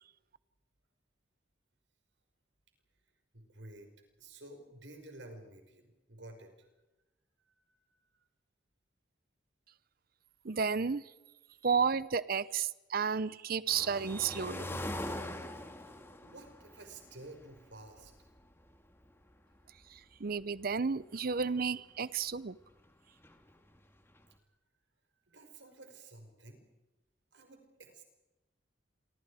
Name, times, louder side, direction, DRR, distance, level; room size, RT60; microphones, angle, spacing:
voice 1, 3.3-3.9 4.2-6.7 7.5-7.8 15.9-16.0 16.2-18.1 25.3-26.7 27.3-28.0, right 2 dB, 80° right, 5 dB, 5.5 m, -52 dB
voice 2, 10.4-11.0 11.6-14.8 20.2-22.5, right 5 dB, 55° right, 17 dB, 0.7 m, -32 dB
sound 1, 13.7-18.5 18.7-18.8 19.0-19.1 19.8-20.0 20.3-20.4 20.7-20.8 21.0-21.5 22.8-22.9 23.2-24.2, left 1 dB, 15° left, 2.1 m, -42 dB
29.0 x 25.0 x 5.0 m, 1.1 s
head